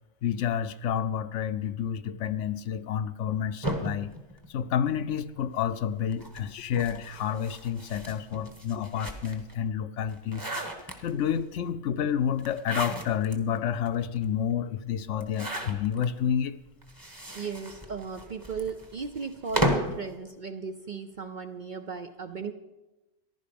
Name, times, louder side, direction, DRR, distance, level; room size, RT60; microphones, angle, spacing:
voice 1, 0.2-4.1 4.5-10.5 11.0-16.6, left 8 dB, 70° left, 12 dB, 0.9 m, -29 dB
sound 1, 3.6-5.2 6.1-9.5 10.0-11.4 12.4-13.4 13.8-13.9 14.2-14.3 15.1-16.1 16.8-20.0, right 1 dB, 15° right, 1.3 m, -34 dB
voice 2, 17.3-22.5, right 5 dB, 50° right, 8 dB, 0.6 m, -36 dB
15.0 x 11.0 x 5.2 m, 1.1 s
omnidirectional pair, 1.3 m